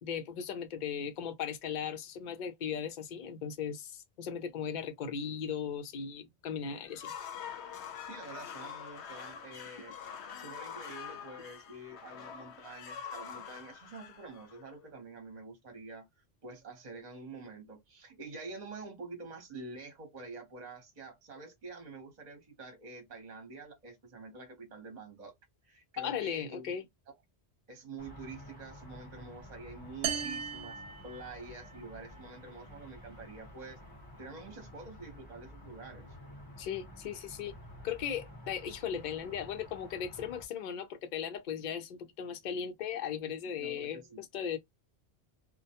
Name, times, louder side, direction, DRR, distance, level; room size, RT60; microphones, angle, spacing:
voice 1, 0.0-7.1 26.0-26.8 36.6-37.5 37.8-44.6, left 8 dB, 55° left, 0.6 m, -37 dB
sound 1, 6.8-15.0, left 7 dB, 80° left, 0.8 m, -45 dB
voice 2, 8.0-9.9 10.4-16.1 16.4-25.3 25.6-26.7 27.7-33.8 34.2-36.1 43.5-44.2, right 3 dB, 40° right, 0.9 m, -47 dB
sound 2, 28.0-40.5, left 1 dB, 20° left, 0.8 m, -51 dB
sound 3, 30.0-31.8, right 7 dB, 70° right, 0.8 m, -37 dB
2.1 x 2.1 x 2.8 m
omnidirectional pair, 1.1 m